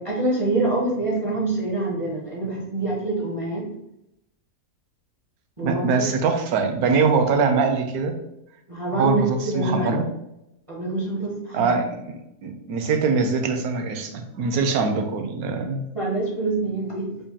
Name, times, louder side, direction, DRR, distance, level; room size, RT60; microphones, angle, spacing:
voice 1, 0.0-3.7 5.6-6.1 8.7-10.0 10.7-11.8 15.9-17.2, right 2 dB, 35° right, -5 dB, 0.5 m, -26 dB
voice 2, 5.6-8.1 8.9-10.1 11.5-15.8, right 4 dB, 75° right, 5 dB, 1.0 m, -23 dB
5.1 x 2.2 x 2.7 m, 0.85 s
omnidirectional pair, 1.6 m